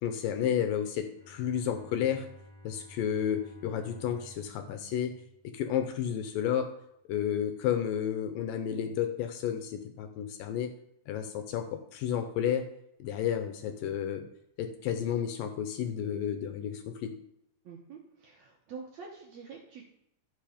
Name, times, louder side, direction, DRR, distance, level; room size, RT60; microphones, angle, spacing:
voice 1, 0.0-2.3 2.6-5.2 5.4-6.7 7.1-10.7 11.1-12.7 13.0-14.3 14.6-17.2, left 9 dB, 75° left, 7 dB, 2.2 m, -31 dB
Bowed string instrument, 1.1-6.1, left 1 dB, 10° left, 2.6 m, -53 dB
voice 2, 17.6-19.8, right 5 dB, 65° right, 0 dB, 1.8 m, -46 dB
12.0 x 5.3 x 5.0 m, 0.77 s
omnidirectional pair, 4.4 m